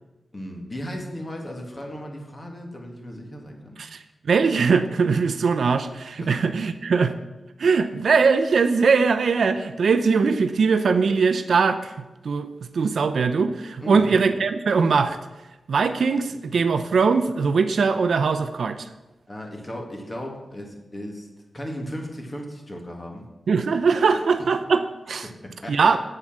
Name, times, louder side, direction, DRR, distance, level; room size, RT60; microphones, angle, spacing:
voice 1, 0.3-3.8 6.2-6.4 13.8-14.2 16.5-16.6 19.3-21.3 21.5-23.3 25.2-26.0, equal, 25° left, 1 dB, 2.0 m, -36 dB
voice 2, 4.3-7.1 7.6-11.9 12.2-12.5 12.7-15.2 15.7-18.8 23.5-25.3 25.7-26.0, right 5 dB, 65° right, 9 dB, 0.7 m, -21 dB
7.9 x 7.8 x 7.4 m, 1.1 s
wide cardioid pair, 145°, 0 cm